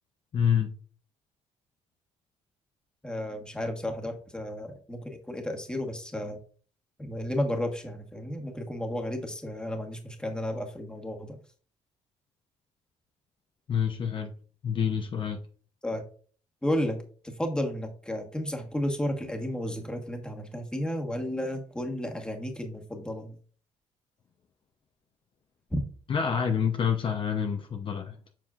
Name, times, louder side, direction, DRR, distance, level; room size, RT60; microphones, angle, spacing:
voice 1, 0.3-0.7 13.7-14.3 14.6-15.4 26.1-28.2, left 7 dB, 40° left, 0.7 m, -27 dB
voice 2, 3.0-6.4 7.0-11.4 15.8-16.0 16.6-23.3 25.7-25.8, left 1 dB, 5° left, 1.3 m, -32 dB
7.4 x 5.5 x 2.4 m
cardioid pair, 105°, 13 cm